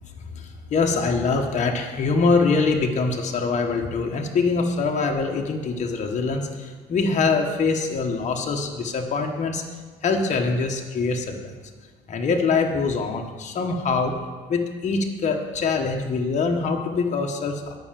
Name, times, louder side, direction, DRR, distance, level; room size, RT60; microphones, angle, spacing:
voice 1, 0.3-9.6 10.0-11.5 12.1-14.1 14.5-17.8, left 4 dB, 45° left, 2 dB, 1.2 m, -24 dB
9.5 x 5.7 x 7.5 m, 1.4 s
cardioid pair, 110°, 17 cm